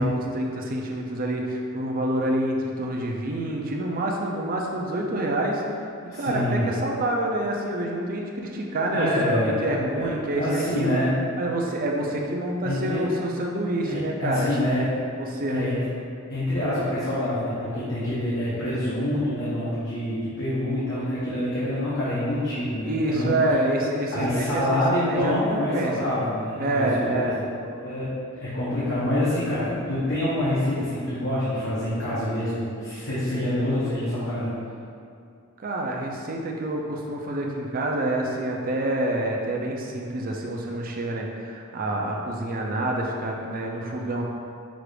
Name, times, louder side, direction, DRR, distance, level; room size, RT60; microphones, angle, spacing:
voice 1, 0.0-5.6 6.1-11.0 11.4-14.5 15.2-15.7 22.8-26.1 26.6-27.4 35.6-44.2, right 1 dB, 45° right, 0 dB, 0.5 m, -27 dB
voice 2, 6.1-6.7 8.9-9.6 10.0-11.1 12.6-13.1 13.8-14.9 15.5-15.8 16.3-23.4 24.1-27.3 27.6-28.1 28.4-34.5, left 1 dB, 65° left, -10 dB, 0.9 m, -26 dB
6.0 x 2.5 x 3.3 m, 2.4 s
head